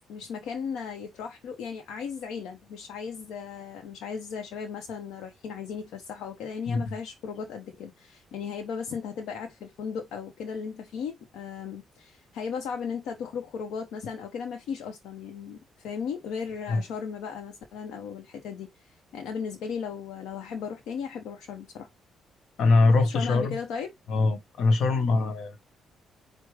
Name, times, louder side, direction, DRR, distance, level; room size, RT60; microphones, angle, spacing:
voice 1, 0.1-21.9 22.9-23.9, left 6 dB, 85° left, 0.7 m, -36 dB
voice 2, 22.6-23.6 24.1-25.6, left 3 dB, 70° left, 1.0 m, -23 dB
4.7 x 2.1 x 4.7 m
cardioid pair, 90°, 0 cm